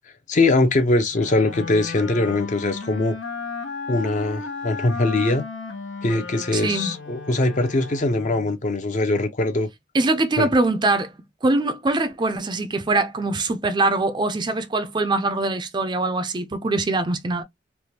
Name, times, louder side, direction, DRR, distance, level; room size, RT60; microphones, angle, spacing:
voice 1, 0.3-3.2 3.9-5.4 6.0-9.7 10.4-10.5, left 2 dB, 40° left, 0.6 m, -22 dB
Wind instrument woodwind instrument, 1.1-8.6, left 4 dB, 90° left, 0.8 m, -34 dB
voice 2, 6.5-6.9 9.9-11.1 11.4-17.4, right 2 dB, 25° right, 0.4 m, -23 dB
3.3 x 2.1 x 2.8 m
head